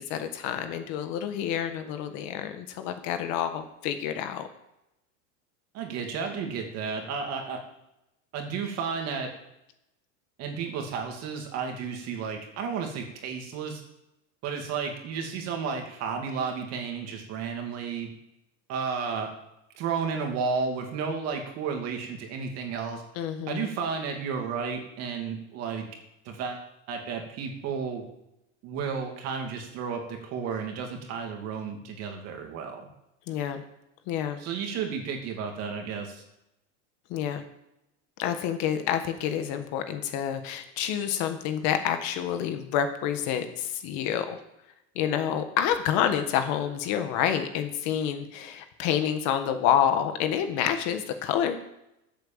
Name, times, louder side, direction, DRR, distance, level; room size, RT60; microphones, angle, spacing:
voice 1, 0.0-4.5 23.1-23.7 33.3-33.6 34.1-34.4 37.1-37.4 38.2-44.4 44.9-51.6, left 9 dB, 45° left, 8 dB, 1.5 m, -28 dB
voice 2, 5.7-7.6 8.3-9.3 10.4-13.8 14.4-18.1 18.7-19.3 19.7-23.0 23.5-25.9 26.2-28.0 28.6-32.9 34.4-36.2, right 6 dB, 40° right, 3 dB, 2.6 m, -32 dB
13.5 x 8.0 x 7.3 m, 0.86 s
supercardioid pair, 165°, 38 cm